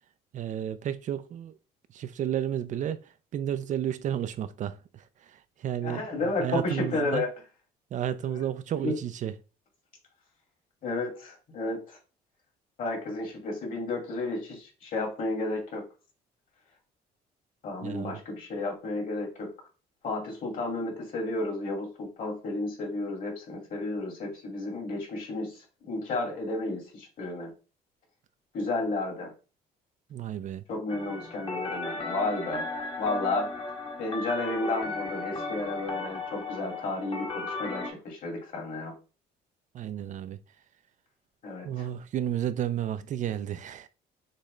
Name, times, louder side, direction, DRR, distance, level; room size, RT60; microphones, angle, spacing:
voice 1, 0.3-1.6 1.9-3.0 3.3-7.2 7.9-9.3 17.8-18.2 30.1-30.6 39.7-40.4 41.6-43.9, right 10 dB, 45° right, 0.4 m, -32 dB
voice 2, 5.8-7.3 8.3-8.4 8.8-9.0 10.8-12.0 12.8-15.8 17.6-19.5 20.0-25.6 25.9-27.5 28.5-29.3 30.7-32.7 33.0-33.5 34.0-38.9 41.4-41.9, left 2 dB, 55° left, 2.4 m, -32 dB
sound 1, 30.9-37.9, left 3 dB, 30° left, 1.1 m, -35 dB
6.5 x 2.3 x 3.1 m
cardioid pair, 110°, 17 cm